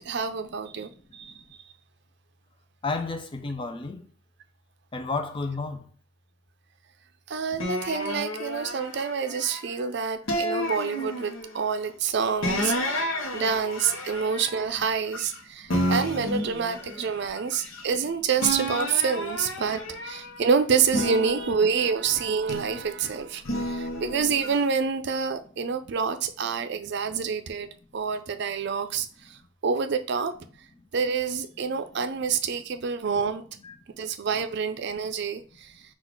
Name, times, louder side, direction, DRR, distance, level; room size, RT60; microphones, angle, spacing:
voice 1, 0.0-1.3 7.3-27.7 27.9-29.4 29.6-30.4 30.9-33.4 34.0-35.7, right 6 dB, 60° right, 0.5 m, -27 dB
voice 2, 2.8-4.1 4.9-5.8 33.6-33.8, left 3 dB, 25° left, 0.5 m, -31 dB
sound 1, 7.6-9.7 10.3-11.6 12.4-15.4 15.7-18.1 18.4-20.4 20.9-22.9 23.4-24.6, equal, 80° left, 0.8 m, -31 dB
4.0 x 2.4 x 4.5 m
head